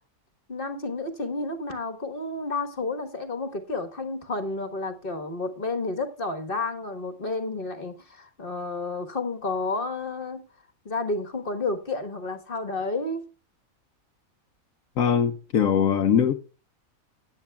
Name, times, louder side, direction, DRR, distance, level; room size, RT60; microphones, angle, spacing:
voice 1, 0.5-10.4 10.8-13.3, left 3 dB, 40° left, 1.5 m, -31 dB
voice 2, 15.0-16.3, left 8 dB, 75° left, 1.3 m, -21 dB
16.0 x 9.4 x 2.3 m
omnidirectional pair, 1.5 m